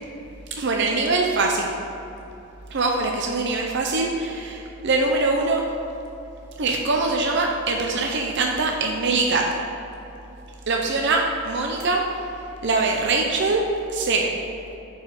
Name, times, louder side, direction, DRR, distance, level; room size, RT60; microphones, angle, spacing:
voice 1, 0.6-1.7 2.7-5.6 6.6-9.4 10.7-12.0 12.6-13.6 13.9-14.3, right 3 dB, 55° right, 1 dB, 0.6 m, -23 dB
6.7 x 4.9 x 6.7 m, 2.9 s
head